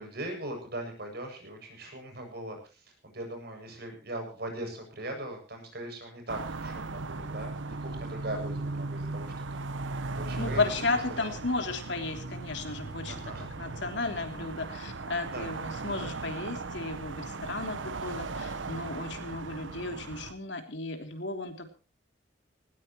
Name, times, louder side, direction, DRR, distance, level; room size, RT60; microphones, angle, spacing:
voice 1, 0.0-10.6 11.2-11.4 13.1-13.5 15.3-15.5, right 1 dB, 60° right, 3 dB, 7.6 m, -40 dB
sound 1, 6.3-20.3, right 3 dB, 90° right, 1.0 m, -37 dB
voice 2, 10.4-13.2 13.6-21.7, left 3 dB, 70° left, 5 dB, 3.3 m, -34 dB
19.5 x 18.5 x 3.1 m, 0.34 s
head